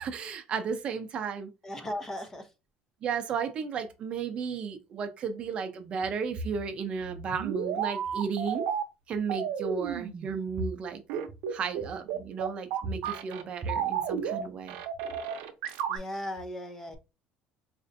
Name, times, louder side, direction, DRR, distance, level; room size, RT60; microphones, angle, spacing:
voice 1, 0.0-1.5 3.0-8.6 9.1-11.0 11.5-14.8, right 5 dB, 40° right, 0.5 m, -33 dB
voice 2, 1.6-2.5 15.9-17.0, left 1 dB, 15° left, 0.6 m, -37 dB
sound 1, 7.0-8.8 9.3-10.3 11.1-13.4 13.7-14.4 14.7-16.0, right 8 dB, 90° right, 0.6 m, -32 dB
4.2 x 2.5 x 2.5 m
cardioid pair, 150°, 3 cm